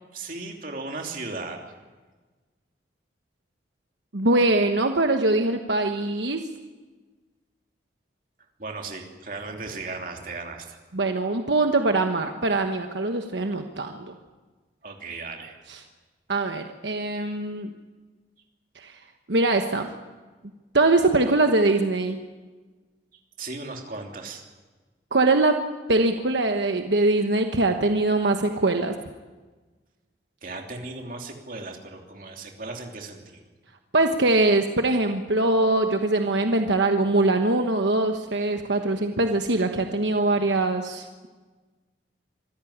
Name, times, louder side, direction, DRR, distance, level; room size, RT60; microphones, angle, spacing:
voice 1, 0.1-1.6 8.6-10.8 14.8-15.6 23.4-24.5 30.4-33.4, right 3 dB, 45° right, 2 dB, 3.0 m, -36 dB
voice 2, 4.1-6.4 10.9-14.1 15.7-15.8 16.3-17.7 18.7-19.0 19.3-19.9 20.7-22.2 25.1-25.6 25.9-28.9 33.9-41.3, right 2 dB, 80° right, 5 dB, 1.2 m, -22 dB
25.0 x 14.0 x 10.0 m, 1.3 s
head